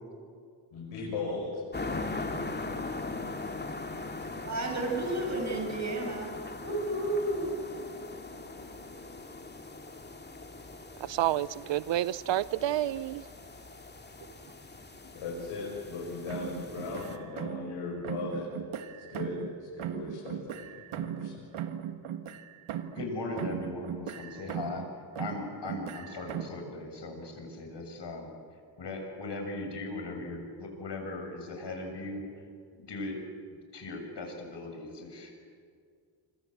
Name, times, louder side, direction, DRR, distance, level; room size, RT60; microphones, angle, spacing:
voice 1, 0.7-1.6 15.1-18.5 19.1-19.4 19.7-21.4, left 3 dB, 85° left, -3 dB, 7.0 m, -37 dB
sound 1, 1.7-17.2, left 3 dB, 20° left, 2.4 m, -40 dB
voice 2, 4.4-6.3 6.6-7.5, right 2 dB, 35° right, 1 dB, 7.5 m, -31 dB
voice 3, 11.0-13.2, right 13 dB, 65° right, 19 dB, 0.7 m, -29 dB
sound 2, 16.3-17.8 18.0-19.5 19.8-23.1 23.4-24.9 25.2-26.6, right 10 dB, 80° right, 1.7 m, -38 dB
voice 4, 23.0-24.8 25.2-28.3 28.8-32.2 32.8-33.1 33.7-35.4, left 2 dB, 60° left, 3 dB, 7.3 m, -38 dB
26.0 x 25.5 x 8.0 m, 2.2 s
cardioid pair, 70°, 48 cm